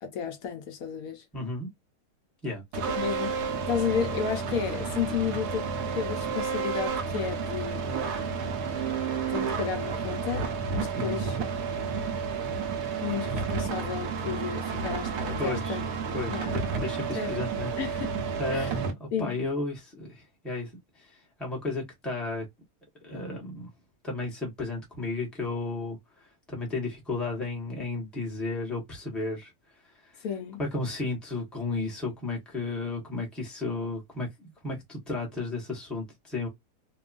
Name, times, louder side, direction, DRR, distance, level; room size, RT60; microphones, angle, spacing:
voice 1, 0.0-1.2 2.7-3.4 3.7-5.7 5.9-7.8 9.3-11.4 13.0-15.8 16.3-16.6 17.1-17.3 17.8-18.1 18.5-18.8 19.1-19.3 30.2-30.6, left 7 dB, 70° left, 1.0 m, -32 dB
voice 2, 1.3-1.7 2.4-2.6 11.0-11.2 15.4-15.8 16.1-17.7 18.4-20.7 21.0-22.5 23.0-23.7 24.0-29.5 30.0-30.3 30.6-36.5, left 2 dB, ahead, 0.8 m, -33 dB
sound 1, 2.7-18.9, right 5 dB, 85° right, 1.2 m, -31 dB
3.0 x 2.2 x 2.4 m
omnidirectional pair, 1.6 m